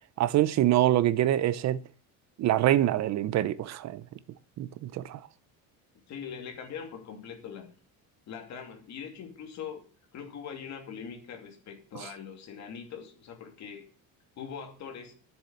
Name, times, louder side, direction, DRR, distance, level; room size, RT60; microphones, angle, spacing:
voice 1, 0.2-1.8 2.4-4.0 4.6-5.2 12.0-12.1, right 13 dB, 45° right, 0.7 m, -25 dB
voice 2, 6.1-7.7 8.3-9.8 10.1-13.9 14.4-15.1, left 7 dB, 45° left, 2.7 m, -42 dB
9.9 x 7.3 x 7.9 m
cardioid pair, 170°, 38 cm